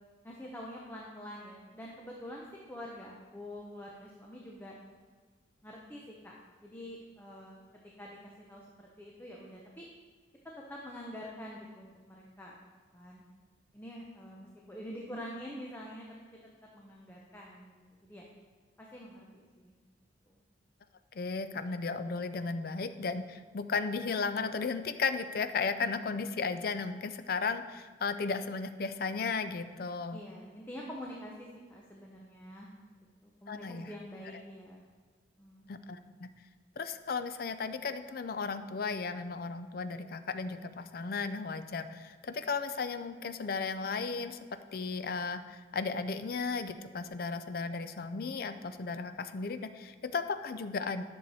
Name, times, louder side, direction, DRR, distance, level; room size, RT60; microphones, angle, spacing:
voice 1, 0.2-4.7 5.6-7.6 8.0-8.2 8.5-9.9 10.6-12.6 12.9-13.2 13.7-16.1 16.4-18.2 18.8-19.7 20.3-20.4 30.1-34.8 35.4-35.7, equal, 10° left, -3 dB, 0.7 m, -46 dB
voice 2, 21.1-30.2 33.5-33.9 35.7-36.3 36.8-44.4 44.7-51.0, left 4 dB, 50° left, 11 dB, 0.4 m, -35 dB
10.5 x 6.4 x 4.1 m, 1.4 s
head